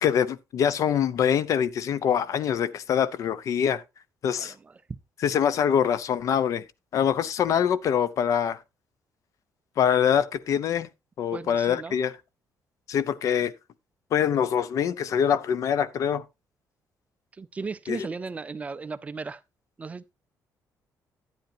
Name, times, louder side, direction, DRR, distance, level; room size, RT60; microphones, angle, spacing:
voice 1, 0.0-3.8 4.2-4.5 5.2-6.6 6.9-8.6 9.8-10.9 11.2-12.1 12.9-13.5 14.1-16.2 17.9-18.1, left 8 dB, 55° left, 0.6 m, -24 dB
voice 2, 4.3-4.8 11.3-12.0 17.4-19.4 19.8-20.1, right 4 dB, 20° right, 0.4 m, -36 dB
12.0 x 9.0 x 2.7 m
cardioid pair, 155°, 7 cm